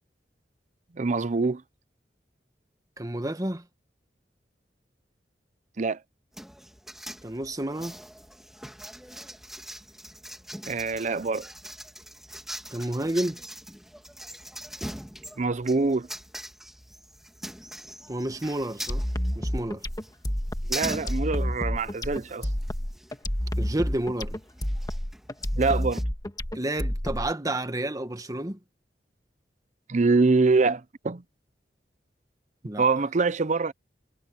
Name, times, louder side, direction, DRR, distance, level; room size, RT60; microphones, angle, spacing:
voice 1, 0.9-1.6 5.8-6.0 10.7-11.5 15.4-16.1 20.7-22.5 25.5-26.0 29.9-31.2 32.8-33.7, right 3 dB, 45° right, 0.6 m, -24 dB
voice 2, 3.0-3.6 7.2-8.0 12.7-13.4 18.1-19.0 19.3-19.8 23.6-24.4 26.5-28.6 32.6-32.9, right 1 dB, 20° right, 1.2 m, -30 dB
sound 1, 6.3-26.0, equal, ahead, 1.9 m, -42 dB
sound 2, 18.9-27.5, equal, 20° left, 1.5 m, -29 dB
head